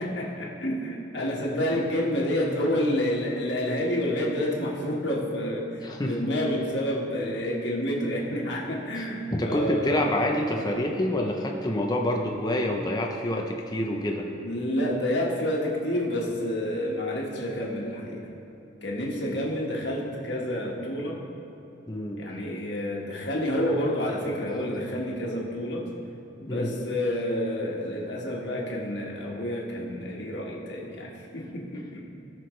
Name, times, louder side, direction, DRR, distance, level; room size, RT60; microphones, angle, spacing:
voice 1, 0.0-10.1 14.4-18.3 18.8-21.2 22.1-25.8 26.4-32.0, left 1 dB, 60° left, -3 dB, 1.6 m, -29 dB
voice 2, 5.8-6.1 9.3-14.3 19.2-19.3 21.9-22.2 26.5-26.7, left 1 dB, 20° left, 1 dB, 0.6 m, -27 dB
18.0 x 6.1 x 3.2 m, 2.9 s
head